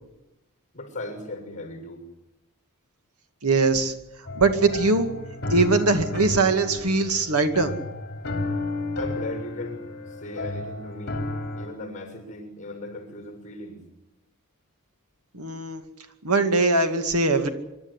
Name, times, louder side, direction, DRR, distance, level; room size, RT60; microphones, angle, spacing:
voice 1, 0.7-2.0 9.0-11.2 11.5-13.8, left 1 dB, 35° left, 4 dB, 6.6 m, -37 dB
voice 2, 3.4-3.9 4.3-5.1 5.5-7.7 15.3-15.8 16.2-17.5, right 3 dB, 80° right, 7 dB, 2.3 m, -21 dB
sound 1, 4.3-11.7, left 2 dB, 50° left, 3.7 m, -32 dB
25.5 x 13.0 x 9.9 m, 0.97 s
head